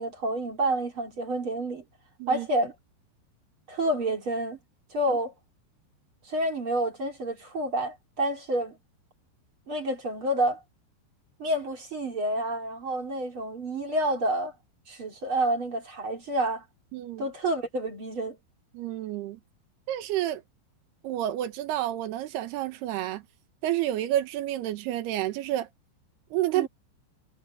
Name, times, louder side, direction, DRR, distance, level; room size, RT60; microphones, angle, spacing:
voice 1, 0.0-1.8 2.3-2.7 3.7-4.6 4.9-5.3 6.3-8.8 9.7-10.6 11.4-14.5 14.9-16.6 17.2-18.4 26.5-26.7, right 1 dB, 35° right, 2.8 m, -29 dB
voice 2, 16.9-17.3 18.7-19.4 19.9-20.4 21.0-23.2 23.6-25.7 26.3-26.7, right 13 dB, 70° right, 3.0 m, -29 dB
omnidirectional pair, 5.3 m